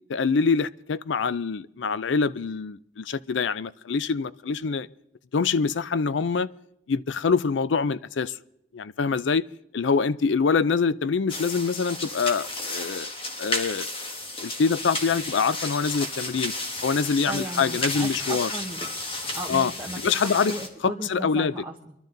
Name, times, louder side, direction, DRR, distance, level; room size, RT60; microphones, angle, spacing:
voice 1, 0.1-4.9 5.3-6.5 6.9-8.3 8.7-9.4 9.7-13.1 13.4-13.9 14.4-16.5 16.8-18.5 19.5-19.7 20.0-20.5 20.8-21.5, left 5 dB, 75° left, 0.5 m, -25 dB
sound 1, 11.3-20.7, left 2 dB, 30° left, 1.7 m, -33 dB
voice 2, 17.3-18.9 19.3-21.9, right 1 dB, 10° right, 1.1 m, -36 dB
23.5 x 12.0 x 3.9 m
head